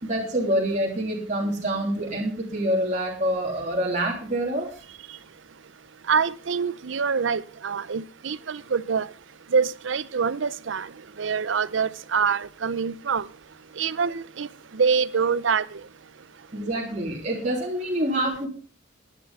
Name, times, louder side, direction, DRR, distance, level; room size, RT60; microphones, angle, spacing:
voice 1, 0.0-4.7 16.5-18.5, right 1 dB, 40° right, 3.3 m, -26 dB
voice 2, 6.0-9.1 9.5-13.3 13.7-15.9, right 6 dB, 75° right, 0.6 m, -25 dB
12.0 x 11.0 x 5.5 m
head